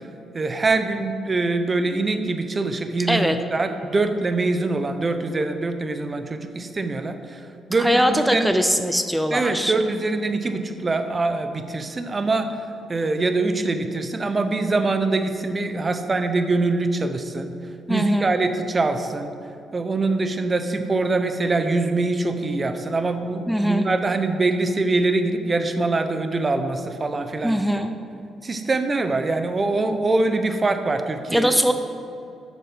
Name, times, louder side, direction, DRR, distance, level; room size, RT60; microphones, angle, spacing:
voice 1, 0.3-8.5 9.3-17.5 17.9-19.3 19.7-27.7 28.4-31.5, right 3 dB, 30° right, 8 dB, 0.9 m, -24 dB
voice 2, 7.8-9.7 17.9-18.3 23.5-23.8 27.4-27.9 31.3-31.7, equal, ahead, 7 dB, 0.6 m, -21 dB
8.5 x 6.7 x 6.2 m, 2.7 s
supercardioid pair, 70°, 0 cm